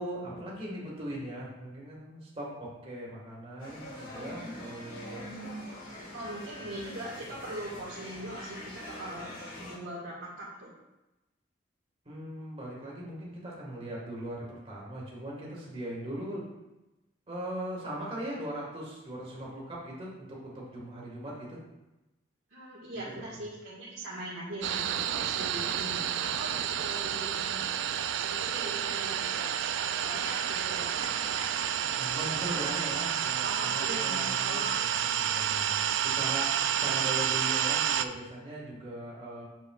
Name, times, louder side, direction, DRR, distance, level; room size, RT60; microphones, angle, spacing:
voice 1, 0.0-5.3 12.1-16.5 17.3-21.6 32.0-39.4, right 1 dB, 30° right, -4 dB, 1.7 m, -39 dB
sound 1, 3.6-9.8, left 1 dB, 85° left, 2.4 m, -43 dB
voice 2, 6.1-9.3 9.6-10.8 22.5-27.6 28.2-31.6 32.1-32.6 33.1-34.8, right 1 dB, 85° right, -10 dB, 1.7 m, -41 dB
sound 2, 24.6-38.1, right 9 dB, 65° right, 0.3 m, -30 dB
7.4 x 6.9 x 2.4 m, 1.0 s
head